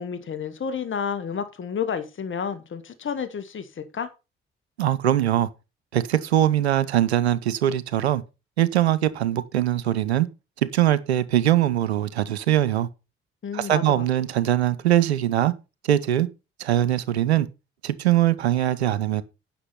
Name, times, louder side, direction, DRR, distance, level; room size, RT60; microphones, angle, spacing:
voice 1, 0.0-4.1 13.4-14.0, left 7 dB, 40° left, 1.7 m, -30 dB
voice 2, 4.8-5.5 5.9-8.2 8.6-10.3 10.7-12.9 13.5-15.5 15.8-16.3 16.6-17.5 17.8-19.2, right 12 dB, 85° right, 0.6 m, -22 dB
9.7 x 6.0 x 5.7 m
figure-of-eight pair, 40°, 32 cm